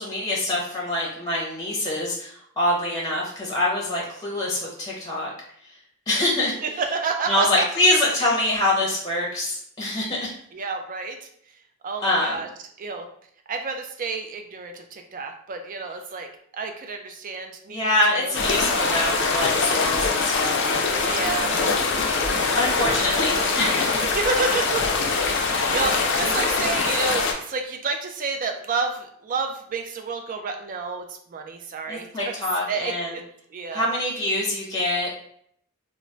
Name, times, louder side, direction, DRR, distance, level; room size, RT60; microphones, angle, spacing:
voice 1, 0.0-2.3 2.6-5.3 6.1-6.5 7.3-10.3 12.0-12.4 17.7-20.7 22.5-23.9 31.9-33.1 33.7-35.2, left 1 dB, 20° left, -4 dB, 0.6 m, -24 dB
voice 2, 6.4-7.6 10.5-11.3 11.8-12.5 12.8-13.1 13.5-16.3 16.5-18.9 21.0-22.8 24.0-25.0 25.4-32.3 32.7-33.2 33.5-33.9, right 4 dB, 40° right, 5 dB, 0.4 m, -30 dB
sound 1, 18.3-27.3, left 4 dB, 60° left, 0.4 m, -23 dB
2.2 x 2.0 x 3.7 m, 0.65 s
head